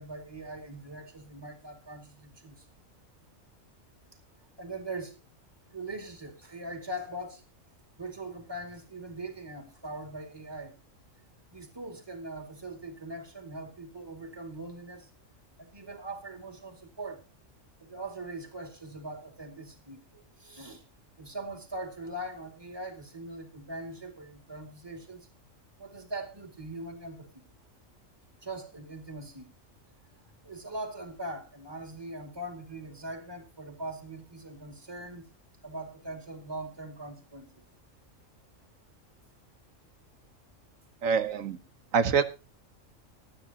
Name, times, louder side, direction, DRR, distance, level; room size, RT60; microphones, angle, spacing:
voice 1, 0.0-2.7 4.6-5.2 5.7-7.4 8.0-10.8 11.5-15.1 15.6-17.2 17.8-20.9 21.2-25.3 25.8-27.4 28.4-29.5 30.4-35.3 35.6-37.6, right 1 dB, 20° right, 4 dB, 2.4 m, -41 dB
voice 2, 41.0-41.6 41.9-42.2, right 6 dB, 85° right, 12 dB, 1.5 m, -25 dB
24.5 x 9.2 x 2.9 m, 0.28 s
omnidirectional pair, 1.3 m